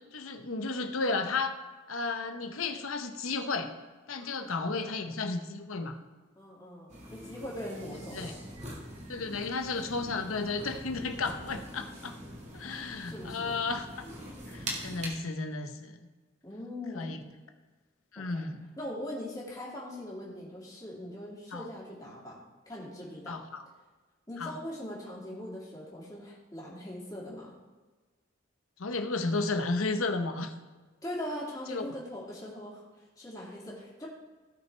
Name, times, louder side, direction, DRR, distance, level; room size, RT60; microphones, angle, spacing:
voice 1, 0.1-1.5 1.9-3.7 4.1-6.0 8.1-8.3 9.1-12.2 12.5-13.9 14.5-16.1 16.9-17.2 18.1-18.7 21.5-21.7 23.3-23.6 24.4-24.5 28.8-30.5 31.7-31.8, left 3 dB, 90° left, 7 dB, 0.9 m, -33 dB
voice 2, 6.4-8.3 12.7-13.6 16.4-17.2 18.2-18.4 18.8-22.4 22.7-23.4 24.3-27.5 31.0-32.8 33.2-34.1, left 1 dB, 15° left, -5 dB, 2.4 m, -41 dB
sound 1, 6.9-15.1, right 1 dB, 35° right, 1.9 m, -43 dB
16.5 x 6.0 x 3.3 m, 1.3 s
head